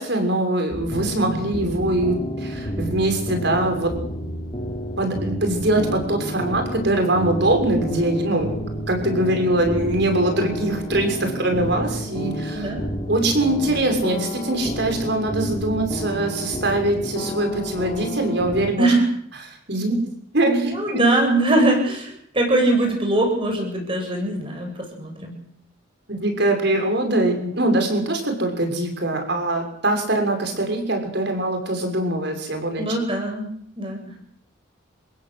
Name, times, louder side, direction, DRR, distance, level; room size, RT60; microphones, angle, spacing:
voice 1, 0.0-4.0 5.0-8.6 8.9-12.7 13.1-18.9 19.4-21.1 26.1-32.8, right 1 dB, 55° right, 5 dB, 6.5 m, -22 dB
sound 1, 0.7-18.7, equal, 30° left, 3.2 m, -30 dB
voice 2, 12.5-12.9 18.8-19.0 20.4-25.4 32.8-33.5 33.8-34.1, right 2 dB, 25° right, 2 dB, 7.6 m, -22 dB
28.5 x 16.5 x 8.2 m, 0.64 s
head